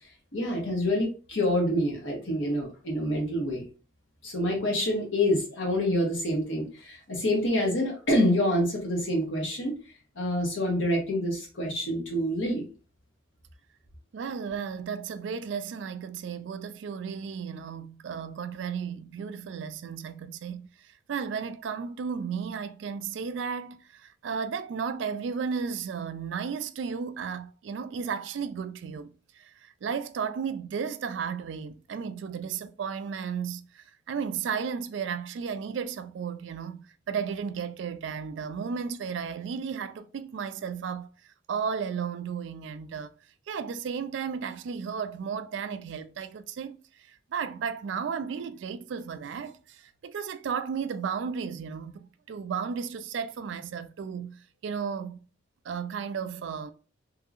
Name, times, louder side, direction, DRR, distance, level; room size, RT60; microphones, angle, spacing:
voice 1, 0.3-3.6 4.2-9.8 10.2-12.6, left 1 dB, 70° left, 1.2 m, -27 dB
voice 2, 14.1-41.1 41.5-43.1 43.5-55.2 55.6-56.7, right 6 dB, 65° right, 0.3 m, -34 dB
3.0 x 2.7 x 2.5 m
head